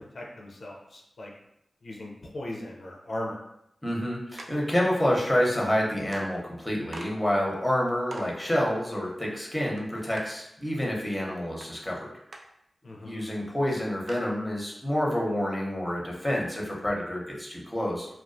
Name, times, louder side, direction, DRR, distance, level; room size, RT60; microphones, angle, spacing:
voice 1, 0.1-1.3 1.8-3.4 12.8-13.2, left 1 dB, 75° left, -2 dB, 0.4 m, -38 dB
voice 2, 3.8-12.1 13.1-18.1, equal, 10° left, -3 dB, 0.7 m, -28 dB
sound 1, 4.4-4.7 5.7-5.8 6.1-6.3 6.9-7.1 7.6-7.7 8.1-8.5 9.8-9.9 10.2-10.3 11.6-11.7 12.3-12.4 13.0-13.1 13.4-13.5 14.1-14.3, right 2 dB, 75° right, 0.3 m, -42 dB
2.3 x 2.2 x 2.5 m, 0.80 s
cardioid pair, 40°, 0 cm